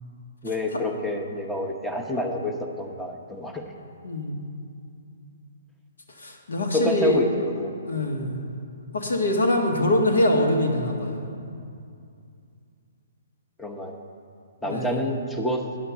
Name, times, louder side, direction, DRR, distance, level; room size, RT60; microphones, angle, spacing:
voice 1, 0.4-3.6 6.7-7.7 13.6-14.0 14.6-15.6, left 1 dB, 5° left, 2 dB, 0.9 m, -27 dB
voice 2, 4.0-4.6 6.2-7.2 7.8-8.4 8.9-11.2 14.6-15.0, left 1 dB, 80° left, 1 dB, 1.5 m, -24 dB
9.6 x 5.7 x 7.3 m, 2.4 s
hypercardioid pair, 140°, 0 cm